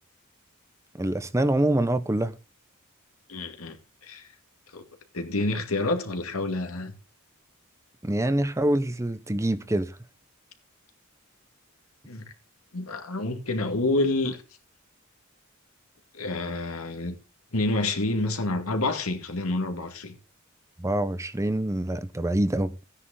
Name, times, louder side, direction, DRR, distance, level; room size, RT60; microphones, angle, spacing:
voice 1, 0.9-2.4 8.0-10.0 20.8-22.7, right 1 dB, 15° right, 0.6 m, -25 dB
voice 2, 3.3-3.8 4.0-4.3 4.7-4.8 5.1-6.9 12.1-12.2 12.7-14.4 16.1-17.1 17.5-20.2, left 2 dB, 80° left, 2.2 m, -28 dB
14.5 x 9.7 x 3.7 m
head